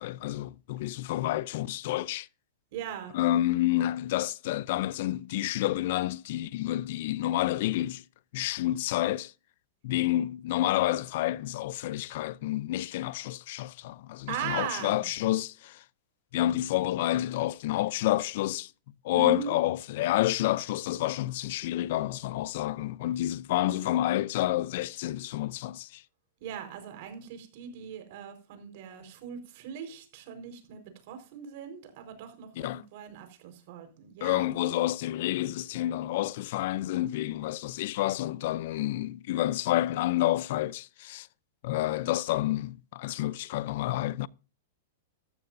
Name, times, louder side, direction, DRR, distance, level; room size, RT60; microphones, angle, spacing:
voice 1, 0.0-2.3 3.1-8.0 8.3-9.3 9.8-15.8 16.3-18.7 19.0-26.0 32.6-32.8 34.2-41.3 41.6-44.3, left 14 dB, 55° left, 0.6 m, -29 dB
voice 2, 2.7-3.2 14.3-15.0 19.1-19.6 23.6-23.8 26.4-34.5, right 8 dB, 55° right, 4.6 m, -39 dB
14.5 x 13.5 x 2.7 m
supercardioid pair, 150°, 0 cm